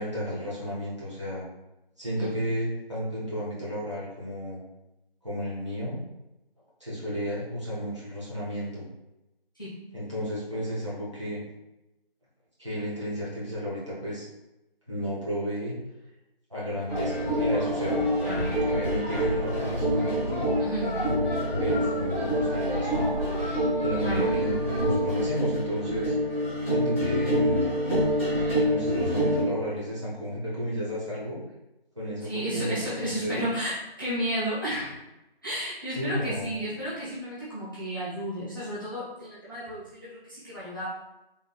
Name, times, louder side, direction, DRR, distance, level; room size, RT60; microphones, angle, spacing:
voice 1, 0.0-1.4 2.0-4.6 5.2-6.0 6.8-8.8 9.9-11.4 12.6-14.3 14.9-15.8 16.5-18.0 18.6-20.4 21.6-23.2 23.8-26.1 26.7-27.6 28.5-31.4 31.9-32.8 33.2-33.4 35.9-36.6, equal, 30° right, -8 dB, 1.2 m, -32 dB
sound 1, 16.9-29.4, equal, 10° right, 1.4 m, -26 dB
voice 2, 20.6-21.0 24.0-24.3 32.2-34.9 35.4-40.9, equal, 20° left, -11 dB, 1.0 m, -33 dB
4.0 x 3.6 x 2.4 m, 0.95 s
figure-of-eight pair, 170°, 30 cm